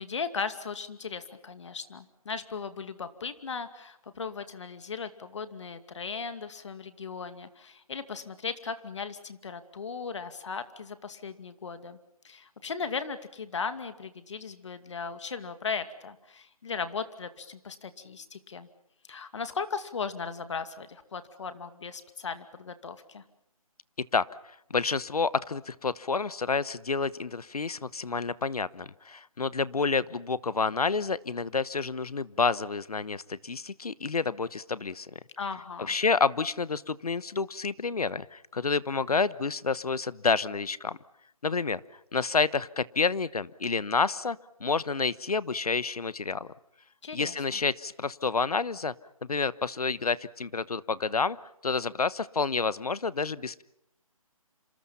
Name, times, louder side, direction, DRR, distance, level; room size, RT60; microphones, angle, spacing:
voice 1, 0.0-12.0 12.2-18.7 19.1-23.2 35.4-35.9 47.0-47.3, left 5 dB, 55° left, 10 dB, 2.4 m, -37 dB
voice 2, 24.7-35.2 35.9-41.0 41.4-41.8 42.1-46.5 47.1-48.9 49.2-51.4 51.6-53.6, left 4 dB, 90° left, 18 dB, 1.1 m, -29 dB
27.5 x 27.5 x 5.8 m, 0.80 s
hypercardioid pair, 160°, 19 cm